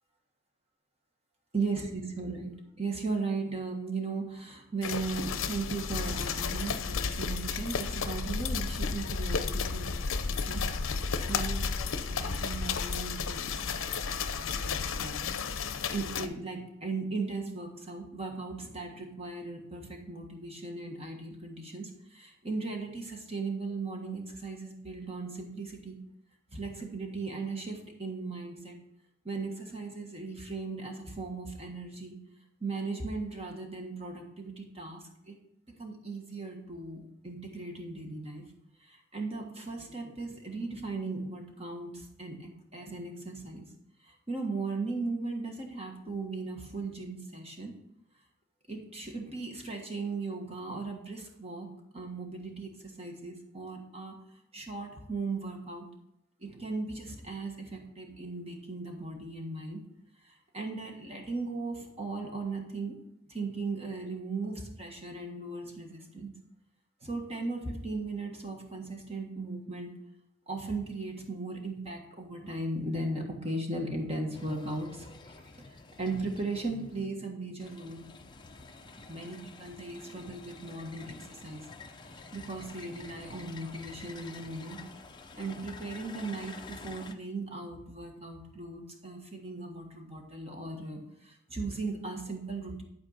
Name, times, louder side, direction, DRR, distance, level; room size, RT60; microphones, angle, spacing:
voice 1, 1.5-2.5 2.8-9.9 10.3-10.6 11.0-15.2 15.6-25.9 26.5-28.8 29.2-32.1 32.6-35.4 35.7-38.4 38.8-43.6 44.0-47.7 48.7-54.1 54.5-55.8 56.4-59.8 60.2-62.9 63.3-66.3 67.0-69.9 70.5-78.0 79.1-81.6 82.1-84.8 85.3-92.8, right 3 dB, 30° right, 2 dB, 1.5 m, -37 dB
sound 1, 4.8-16.3, left 5 dB, 70° left, 0.7 m, -32 dB
sound 2, 74.3-77.1 77.6-87.1, left 3 dB, 20° left, 0.5 m, -49 dB
11.5 x 4.5 x 5.6 m, 0.80 s
head